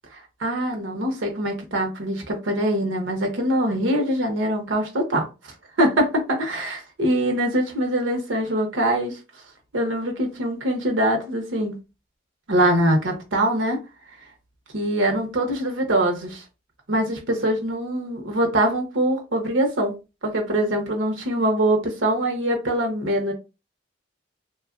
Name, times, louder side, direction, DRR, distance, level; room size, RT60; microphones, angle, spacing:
voice 1, 0.4-5.3 5.8-9.2 9.7-11.8 12.5-13.8 14.7-16.4 16.9-19.9 20.2-23.3, right 1 dB, 85° right, 0.9 m, -23 dB
3.0 x 2.3 x 2.4 m
head